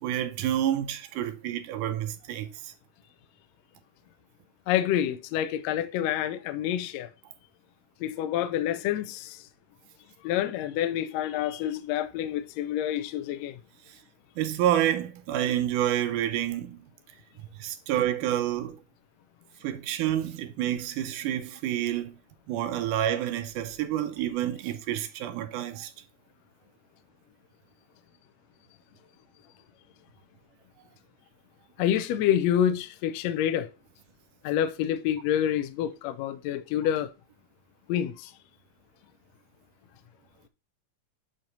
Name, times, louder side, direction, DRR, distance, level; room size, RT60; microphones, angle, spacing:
voice 1, 0.0-2.7 13.9-14.0 14.4-16.8 17.4-18.8 19.6-22.1 22.5-25.9, right 11 dB, 85° right, 2.2 m, -29 dB
voice 2, 4.7-7.1 8.0-9.4 10.2-13.6 31.8-33.7 34.4-37.1 37.9-38.3, left 10 dB, 80° left, 1.5 m, -27 dB
7.8 x 2.9 x 5.2 m
omnidirectional pair, 3.7 m